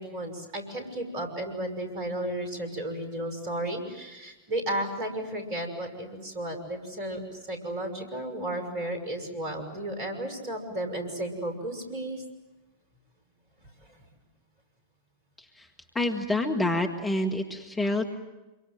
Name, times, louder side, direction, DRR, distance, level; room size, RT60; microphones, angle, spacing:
voice 1, 0.0-7.2 7.5-12.2 13.8-14.0, right 1 dB, 45° right, 6 dB, 5.9 m, -33 dB
voice 2, 15.9-18.1, left 1 dB, 10° left, 3 dB, 1.9 m, -27 dB
27.0 x 23.5 x 7.7 m, 1.1 s
figure-of-eight pair, 90°, 0 cm